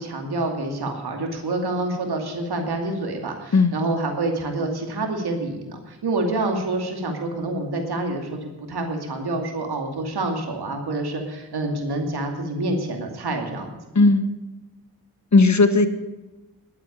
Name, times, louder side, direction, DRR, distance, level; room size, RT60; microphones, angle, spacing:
voice 1, 0.0-13.7, right 2 dB, 80° right, 3 dB, 2.6 m, -27 dB
voice 2, 13.9-14.3 15.3-15.9, left 3 dB, 45° left, 10 dB, 1.4 m, -16 dB
11.0 x 8.6 x 8.5 m, 1.1 s
cardioid pair, 45°, 39 cm